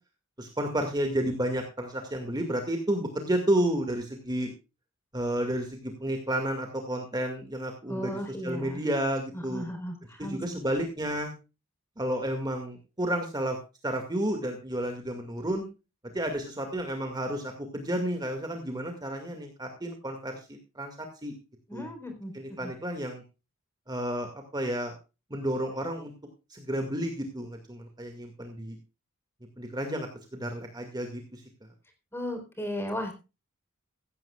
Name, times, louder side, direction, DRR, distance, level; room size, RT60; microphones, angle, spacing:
voice 1, 0.4-4.5 5.1-9.6 10.2-11.3 12.0-13.6 13.8-15.7 16.1-21.3 21.7-21.9 22.3-23.2 23.9-24.9 25.3-26.1 26.5-28.8 29.6-31.4, right 1 dB, 20° right, 4 dB, 2.1 m, -31 dB
voice 2, 7.9-8.8 9.3-10.6 21.7-22.7 32.1-33.1, equal, 10° left, 6 dB, 3.9 m, -36 dB
15.5 x 15.5 x 2.4 m, 0.29 s
head